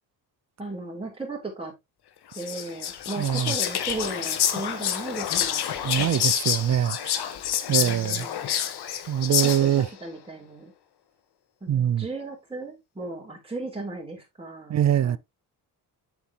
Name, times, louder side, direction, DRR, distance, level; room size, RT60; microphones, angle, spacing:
voice 1, 0.6-1.7 2.3-6.0 7.7-8.5 9.4-10.7 11.6-14.7 15.0-15.2, right 3 dB, 15° right, 3.4 m, -36 dB
Whispering, 2.3-9.9, left 10 dB, 75° left, 1.2 m, -28 dB
voice 2, 3.2-3.5 5.8-7.2 7.7-8.3 9.1-9.9 11.7-12.1 14.7-15.2, right 10 dB, 45° right, 0.4 m, -23 dB
7.2 x 7.2 x 2.9 m
cardioid pair, 85°, 39 cm